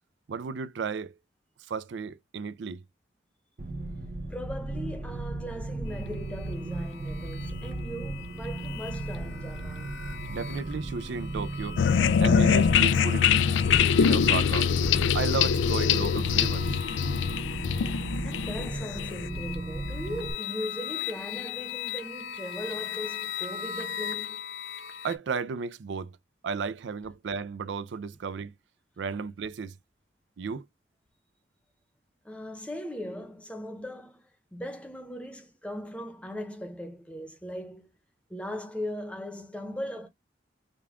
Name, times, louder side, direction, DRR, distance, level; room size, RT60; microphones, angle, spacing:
voice 1, 0.3-1.2 1.7-2.8 10.3-11.8 12.2-13.3 14.0-14.7 15.1-16.7 25.0-26.1 26.4-28.5 29.0-29.7 30.4-30.6, right 5 dB, 75° right, 0.4 m, -34 dB
sound 1, 3.6-20.3, right 2 dB, 45° right, 0.8 m, -36 dB
voice 2, 4.3-10.0 18.2-24.4 32.2-37.9 38.3-40.1, equal, 5° left, 0.8 m, -39 dB
sound 2, 5.9-25.2, left 9 dB, 70° left, 0.9 m, -40 dB
sound 3, 11.8-19.3, left 7 dB, 85° left, 0.3 m, -23 dB
5.1 x 2.3 x 3.5 m
head